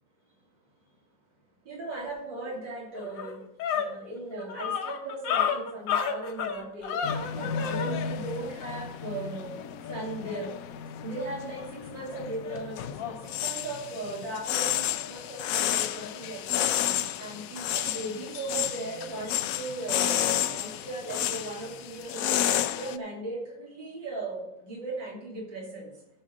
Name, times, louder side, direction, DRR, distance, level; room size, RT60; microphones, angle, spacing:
voice 1, 1.7-3.4 3.7-7.0 7.3-9.6 9.9-10.5 11.0-16.7 17.2-22.4 22.8-25.9, right 2 dB, 85° right, -4 dB, 3.6 m, -37 dB
sound 1, 2.5-2.6 3.0-7.9, left 7 dB, 90° left, 1.7 m, -30 dB
sound 2, 7.0-23.0, left 11 dB, 75° left, 0.8 m, -31 dB
13.0 x 5.1 x 6.2 m, 0.81 s
omnidirectional pair, 1.9 m